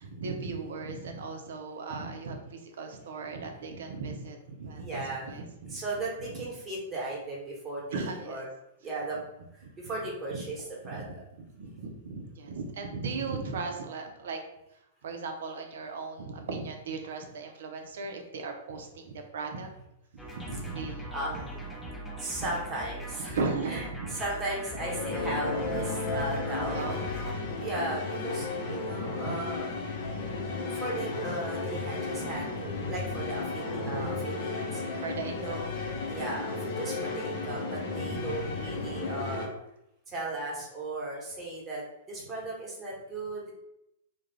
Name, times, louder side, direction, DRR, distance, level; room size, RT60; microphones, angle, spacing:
voice 1, 0.0-5.8 6.2-6.4 7.9-8.4 9.6-10.0 10.3-10.4 10.8-14.4 15.0-19.7 20.2-21.4 22.4-22.5 23.3-24.2 26.7-27.0 27.3-27.5 28.6-29.4 30.7-30.8 31.3-31.4 32.1-33.4 33.7-34.3 34.9-35.6 36.7-37.1 38.0-38.5, right 4 dB, 65° right, 4 dB, 0.5 m, -38 dB
voice 2, 4.8-5.3 5.7-8.5 8.8-9.2 9.8-11.0 21.1-21.6 22.2-23.4 23.7-23.8 24.2-26.8 27.6-29.7 30.7-34.8 35.3-35.7 36.1-39.5 40.1-41.8 42.1-43.5, right 2 dB, 20° right, -4 dB, 1.0 m, -36 dB
sound 1, 20.2-27.3, right 1 dB, 5° left, 0.7 m, -41 dB
sound 2, 24.8-39.5, left 3 dB, 55° left, 0.5 m, -34 dB
2.3 x 2.1 x 3.1 m, 0.84 s
hypercardioid pair, 110°, 0 cm